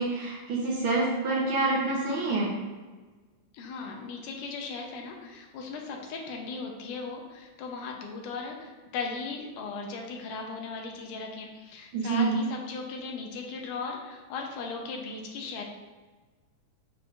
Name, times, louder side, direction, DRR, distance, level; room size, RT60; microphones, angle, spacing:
voice 1, 0.0-2.5 11.9-12.3, right 3 dB, 90° right, -6 dB, 1.1 m, -27 dB
voice 2, 3.5-15.6, left 4 dB, 75° left, 1 dB, 2.3 m, -37 dB
6.8 x 6.1 x 2.5 m, 1.3 s
omnidirectional pair, 3.9 m